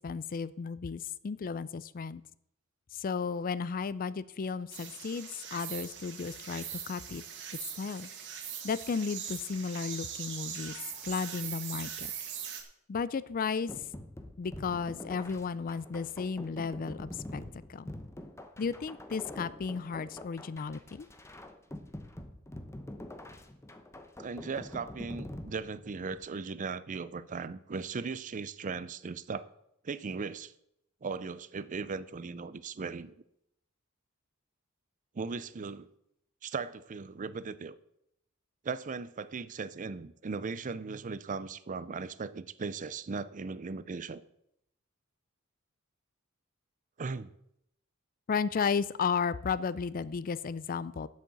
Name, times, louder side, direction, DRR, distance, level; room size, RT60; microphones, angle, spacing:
voice 1, 0.0-2.2 2.9-7.2 7.8-8.1 8.6-10.7 11.0-12.1 12.9-13.7 14.4-17.4 17.7-17.9 18.6-21.1 48.3-51.1, left 5 dB, 40° left, 17 dB, 0.4 m, -34 dB
sound 1, 4.7-12.6, right 8 dB, 55° right, 1.8 m, -41 dB
sound 2, 13.7-26.2, left 1 dB, 15° left, 0.9 m, -45 dB
voice 2, 24.2-29.5 29.8-30.5 31.0-33.1 35.1-35.9 36.4-37.7 38.6-44.2 47.0-47.3, right 4 dB, 35° right, 15 dB, 0.5 m, -38 dB
8.6 x 6.4 x 8.3 m, 0.77 s
head